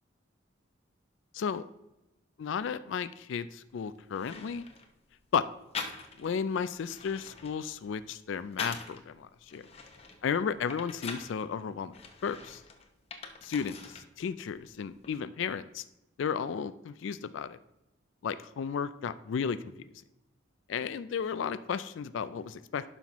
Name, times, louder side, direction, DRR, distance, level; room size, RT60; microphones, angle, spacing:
voice 1, 1.3-1.7 2.4-4.7 5.3-5.5 6.2-9.7 10.2-12.0 12.2-12.6 13.4-15.9 16.2-17.6 18.2-19.6 20.7-22.8, left 6 dB, 70° left, 14 dB, 0.3 m, -33 dB
sound 1, 3.7-3.8 4.1-4.9 5.7-6.4 6.7-9.0 9.5-11.4 11.9-14.1 14.4-15.2, left 4 dB, 30° left, 0.8 m, -43 dB
11.5 x 5.6 x 3.0 m, 0.94 s
head